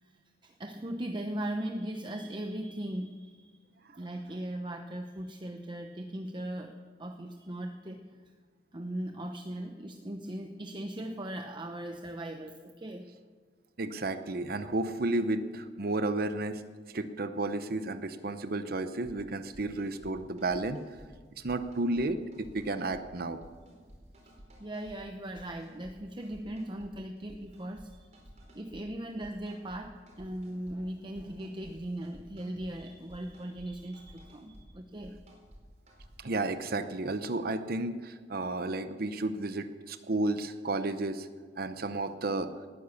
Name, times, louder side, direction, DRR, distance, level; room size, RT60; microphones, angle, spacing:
voice 1, 0.0-3.6 3.9-8.2 8.7-13.1 24.6-28.2 28.5-35.2, right 1 dB, 25° right, 5 dB, 0.8 m, -39 dB
voice 2, 13.8-16.6 16.9-20.8 21.4-23.4 36.2-41.3 41.6-42.5, right 2 dB, 60° right, 10 dB, 0.8 m, -32 dB
sound 1, 19.0-19.1 19.5-20.1 20.4-21.1 21.5-22.1 22.3-23.0 23.4-25.0 25.3-25.9 26.2-26.9 27.2-27.9 28.1-28.8 29.2-29.8 30.1-30.8 31.1-31.7 32.0-33.7 33.9-34.6 35.0-35.6 35.9-36.3, equal, 40° right, 4.6 m, -54 dB
19.0 x 10.0 x 7.1 m, 1.5 s
head